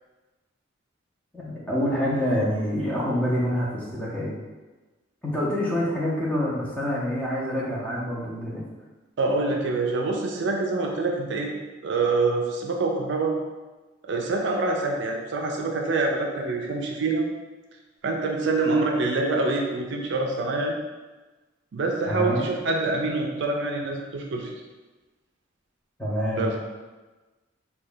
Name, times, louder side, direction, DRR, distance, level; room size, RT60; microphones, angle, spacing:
voice 1, 1.3-4.3 5.2-8.6 22.1-22.4 26.0-26.5, equal, 5° left, -6 dB, 0.7 m, -26 dB
voice 2, 9.2-11.5 11.8-13.4 14.0-17.3 18.0-20.8 21.7-24.5 26.4-26.5, right 3 dB, 60° right, 1 dB, 0.4 m, -25 dB
3.2 x 2.2 x 3.8 m, 1.2 s
head